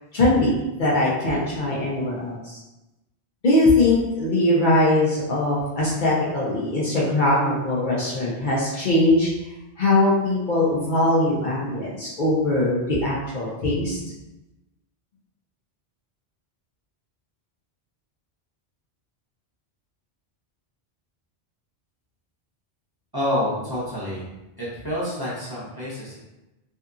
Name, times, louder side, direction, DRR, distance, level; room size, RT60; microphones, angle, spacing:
voice 1, 0.1-2.6 3.4-9.3 9.8-14.0, left 2 dB, 55° left, -6 dB, 0.7 m, -21 dB
voice 2, 23.1-24.3 24.6-26.2, equal, 25° right, -10 dB, 0.8 m, -28 dB
2.7 x 2.5 x 2.3 m, 1.0 s
omnidirectional pair, 1.1 m